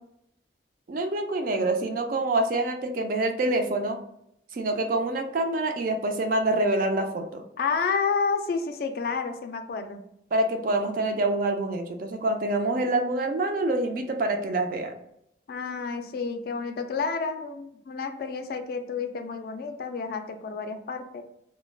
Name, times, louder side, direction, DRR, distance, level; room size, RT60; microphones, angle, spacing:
voice 1, 0.9-4.0 4.5-7.4 10.3-14.9, right 2 dB, 50° right, 5 dB, 0.4 m, -26 dB
voice 2, 7.6-10.0 15.5-21.2, left 5 dB, 55° left, 7 dB, 0.3 m, -30 dB
2.3 x 2.1 x 3.2 m, 0.77 s
head